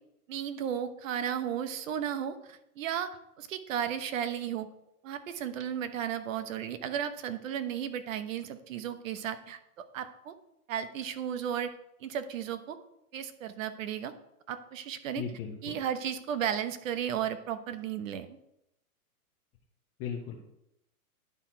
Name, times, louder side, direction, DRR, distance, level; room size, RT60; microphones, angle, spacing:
voice 1, 0.3-4.7 5.0-10.3 10.7-11.7 12.0-12.8 13.1-14.1 14.5-15.2 15.6-18.3, right 9 dB, 60° right, 10 dB, 1.0 m, -34 dB
voice 2, 15.2-15.7 20.0-20.4, left 7 dB, 15° left, -3 dB, 0.4 m, -37 dB
11.0 x 4.1 x 4.4 m, 0.82 s
hypercardioid pair, 150°, 45 cm